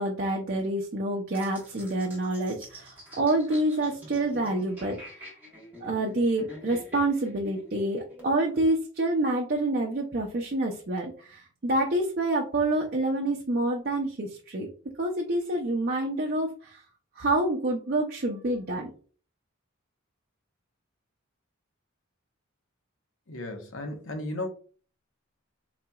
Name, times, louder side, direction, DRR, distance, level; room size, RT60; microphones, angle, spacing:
voice 1, 0.0-5.3 5.8-14.7 15.0-16.8 17.2-18.9, right 1 dB, 45° right, 0.5 m, -27 dB
sound 1, 1.3-8.3, left 1 dB, 10° right, 1.2 m, -46 dB
voice 2, 23.3-24.5, left 1 dB, 70° left, 0.8 m, -34 dB
4.0 x 2.9 x 2.3 m
head